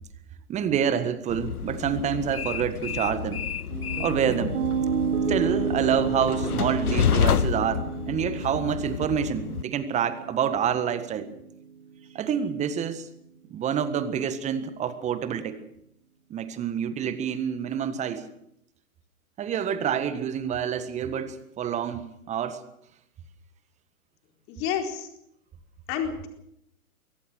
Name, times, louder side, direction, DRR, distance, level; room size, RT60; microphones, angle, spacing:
voice 1, 0.5-3.4 4.0-4.6 5.3-11.3 12.1-13.1 13.5-15.6 16.3-18.3 19.4-22.6, right 8 dB, 15° right, 12 dB, 1.5 m, -27 dB
Train, 1.3-9.6, left 8 dB, 85° left, 0.8 m, -29 dB
Piano, 3.7-11.8, right 6 dB, 55° right, 4.1 m, -31 dB
voice 2, 24.5-25.1 25.9-26.3, left 8 dB, 30° left, 3 dB, 4.3 m, -29 dB
23.0 x 18.0 x 6.5 m, 0.75 s
figure-of-eight pair, 125°, 44 cm